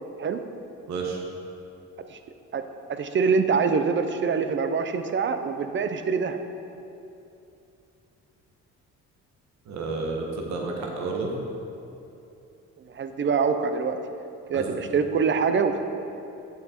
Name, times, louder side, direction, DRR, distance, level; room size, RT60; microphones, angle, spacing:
voice 1, 0.9-1.2 9.7-11.3 14.5-14.8, right 3 dB, 65° right, 0 dB, 1.2 m, -31 dB
voice 2, 2.9-6.4 12.9-14.0 14.5-15.8, right 5 dB, 40° right, 8 dB, 0.6 m, -24 dB
8.6 x 6.5 x 4.3 m, 2.8 s
cardioid pair, 90°, 30 cm